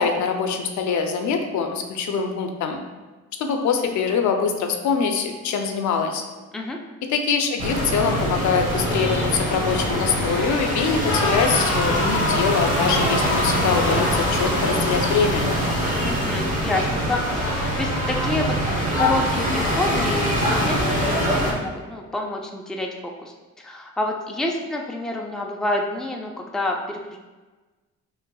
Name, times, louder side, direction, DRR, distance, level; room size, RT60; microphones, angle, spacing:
voice 1, 0.0-2.8 3.4-6.2 7.1-15.4, left 5 dB, 70° left, 4 dB, 0.6 m, -23 dB
sound 1, 7.6-21.5, equal, 25° right, 1.2 m, -23 dB
sound 2, 11.1-16.2 17.1-17.7, left 3 dB, 45° left, 1.1 m, -28 dB
voice 2, 16.0-18.6 18.8-23.3 23.6-27.2, left 2 dB, ahead, 0 dB, 0.5 m, -28 dB
5.6 x 3.2 x 2.3 m, 1.2 s
cardioid pair, 90°, 30 cm